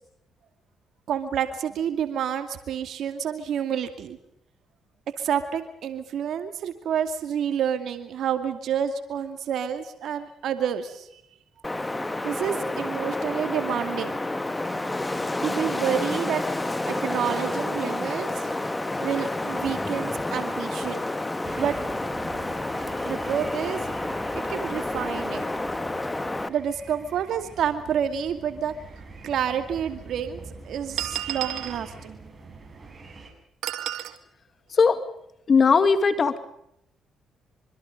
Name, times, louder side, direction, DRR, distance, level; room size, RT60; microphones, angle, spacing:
voice 1, 1.1-4.2 5.2-11.2 12.2-14.2 15.4-16.4 16.8-18.5 19.0-21.0 21.6-21.8 23.0-23.9 24.3-25.4 26.5-28.7 29.2-32.2, right 8 dB, 70° right, 8 dB, 2.4 m, -29 dB
Wind, 11.6-26.5, left 2 dB, 15° left, 1.8 m, -29 dB
sound 1, 21.4-33.3, right 3 dB, 30° right, 7.7 m, -44 dB
sound 2, 29.0-29.1 30.0-30.1 31.0-31.8 33.6-34.2, right 12 dB, 85° right, 2.0 m, -31 dB
voice 2, 35.5-36.4, left 5 dB, 45° left, 11 dB, 2.2 m, -18 dB
25.5 x 25.5 x 5.3 m, 0.76 s
cardioid pair, 90°, 0 cm